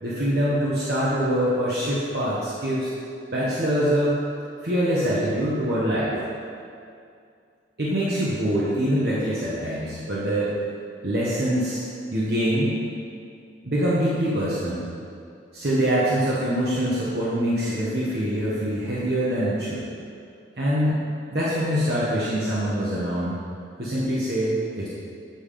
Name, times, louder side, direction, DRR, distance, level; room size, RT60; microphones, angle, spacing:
voice 1, 0.0-2.9 3.3-4.1 4.6-6.1 7.8-10.5 11.0-11.8 12.1-12.9 13.6-14.8 15.5-19.8 20.6-21.0 21.3-23.4 23.8-24.9, equal, 55° right, -8 dB, 1.0 m, -24 dB
7.8 x 3.5 x 4.9 m, 2.4 s
head